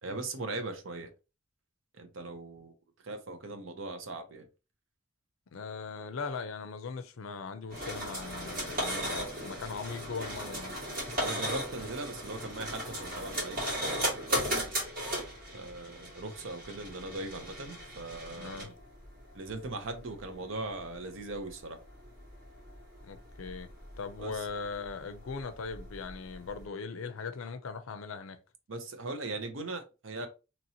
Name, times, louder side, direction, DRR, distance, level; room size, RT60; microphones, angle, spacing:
voice 1, 0.0-1.1 1.9-2.7 3.0-4.5 11.2-14.3 15.5-18.7 19.3-21.8 24.2-24.5 28.7-30.3, right 2 dB, 70° right, 0.7 m, -39 dB
voice 2, 5.5-10.8 18.3-18.7 23.0-23.7 24.0-28.4, left 4 dB, 80° left, 0.5 m, -39 dB
sound 1, 7.7-26.6, equal, 40° right, 1.8 m, -37 dB
2.9 x 2.8 x 2.8 m
head